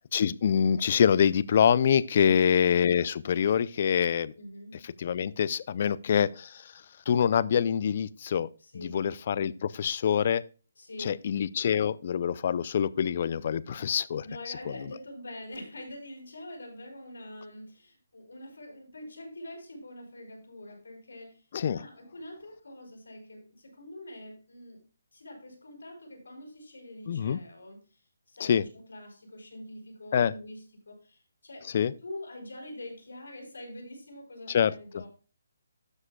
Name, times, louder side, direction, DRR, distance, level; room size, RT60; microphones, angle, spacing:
voice 1, 0.1-4.3 5.0-6.7 7.1-8.5 8.7-10.4 11.0-14.2 21.5-21.9 27.1-27.4 28.4-28.6 30.1-30.3 31.7-31.9 34.5-34.7, left 8 dB, 35° left, 0.3 m, -25 dB
voice 2, 4.4-4.8 8.6-9.0 10.8-11.2 14.2-21.4 21.7-24.8 25.1-35.1, left 1 dB, 90° left, 4.4 m, -45 dB
12.5 x 7.5 x 2.2 m
hypercardioid pair, 170°, 0 cm